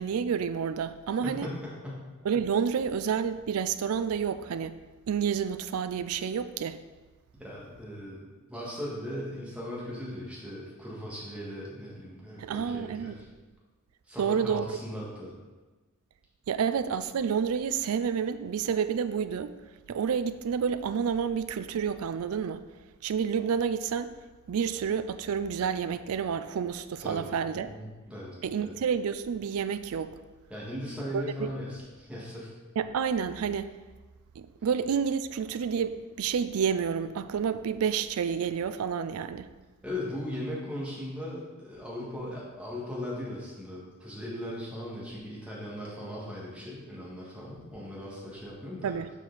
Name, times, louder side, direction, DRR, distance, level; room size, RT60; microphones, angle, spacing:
voice 1, 0.0-1.5 2.2-4.7 5.1-6.8 12.4-13.2 14.2-14.7 16.5-19.5 19.9-22.6 23.0-24.1 24.5-27.7 28.4-30.2 31.1-31.5 32.8-33.7 34.4-39.5 48.8-49.1, right 7 dB, 85° right, 12 dB, 0.4 m, -29 dB
voice 2, 1.2-2.1 7.4-8.2 8.5-13.2 14.1-15.3 27.0-28.3 28.6-28.8 30.5-32.5 39.8-48.9, left 1 dB, 5° right, -7 dB, 1.8 m, -38 dB
6.7 x 4.6 x 4.1 m, 1.2 s
head